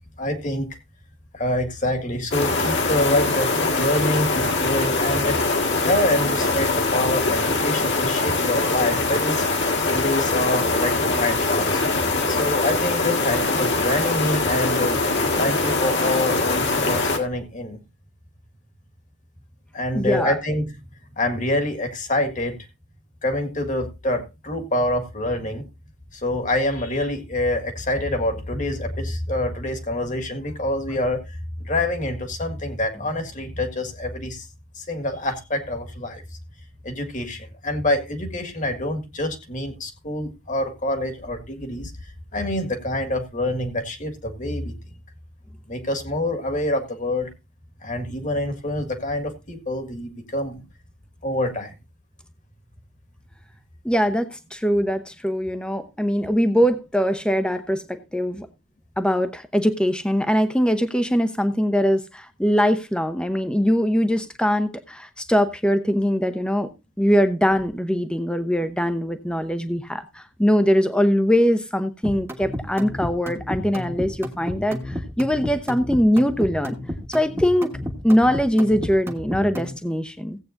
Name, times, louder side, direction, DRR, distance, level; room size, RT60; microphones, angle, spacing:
voice 1, 0.2-0.7 1.3-5.4 5.8-9.5 9.9-11.8 12.3-15.0 15.4-17.8 19.7-20.7 21.2-22.6 23.2-25.7 26.1-34.5 34.8-36.2 36.8-41.9 42.3-44.8 45.7-47.3 47.8-50.6 51.2-51.7, left 1 dB, 35° left, 1.8 m, -26 dB
sound 1, 2.3-17.2, left 3 dB, 55° left, 1.8 m, -22 dB
voice 2, 19.9-20.4 53.8-58.5 59.0-66.7 67.0-76.8 77.1-77.8 78.0-80.4, equal, 5° left, 0.8 m, -22 dB
sound 2, 72.0-79.8, left 1 dB, 10° right, 1.3 m, -31 dB
17.0 x 8.5 x 2.6 m
head